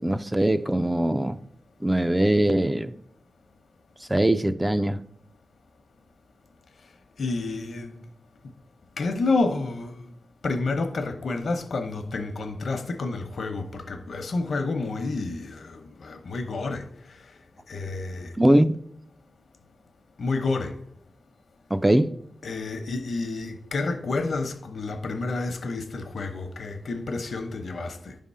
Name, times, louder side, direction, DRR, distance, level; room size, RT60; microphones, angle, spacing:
voice 1, 0.0-1.4 1.8-3.0 4.1-5.0 18.4-18.8 21.7-22.1, right 1 dB, 10° right, 0.3 m, -21 dB
voice 2, 7.2-8.0 9.0-10.1 10.4-16.9 17.7-18.3 20.2-20.7 22.4-28.2, left 3 dB, 70° left, 0.8 m, -29 dB
10.5 x 3.6 x 5.5 m
wide cardioid pair, 110°, 0 cm